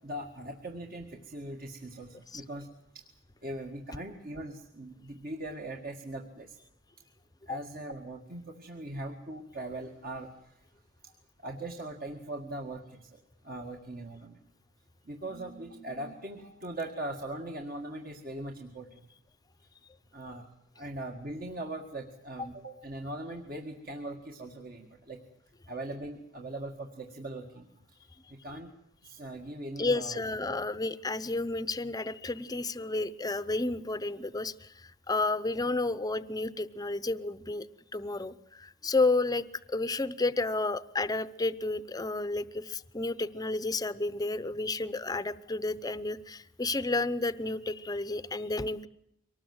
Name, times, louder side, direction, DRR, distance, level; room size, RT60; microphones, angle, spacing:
voice 1, 0.0-2.7 2.9-3.1 3.4-6.6 7.5-10.6 11.4-14.4 15.1-19.0 20.1-25.2 25.7-27.7 28.3-28.7 29.0-30.2 30.5-30.6, right 1 dB, 45° right, 1 dB, 2.0 m, -40 dB
voice 2, 29.8-37.7 37.9-48.9, left 2 dB, 20° left, 14 dB, 0.8 m, -31 dB
24.0 x 19.5 x 8.0 m, 0.79 s
head